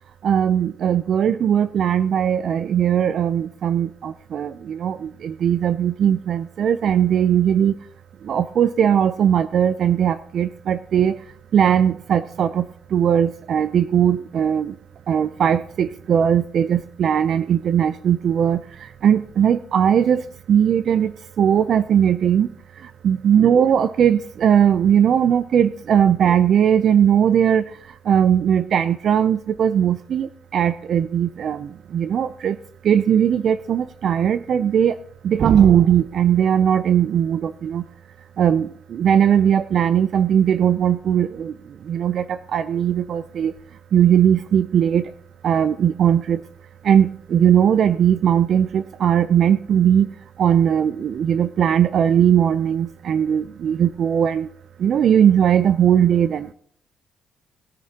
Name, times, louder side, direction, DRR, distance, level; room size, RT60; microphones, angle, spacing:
voice 1, 0.2-7.7 8.3-11.2 11.5-12.7 12.9-14.7 15.1-18.6 19.0-20.2 20.5-21.1 21.4-22.5 23.0-27.6 28.1-30.3 30.5-32.6 32.8-34.9 35.2-37.8 38.4-41.5 41.9-43.5 43.9-45.0 45.4-46.4 46.8-50.1 50.4-54.5 54.8-56.5, right 9 dB, 65° right, 13 dB, 0.4 m, -18 dB
21.0 x 10.0 x 2.8 m, 0.63 s
cardioid pair, 85°, 0 cm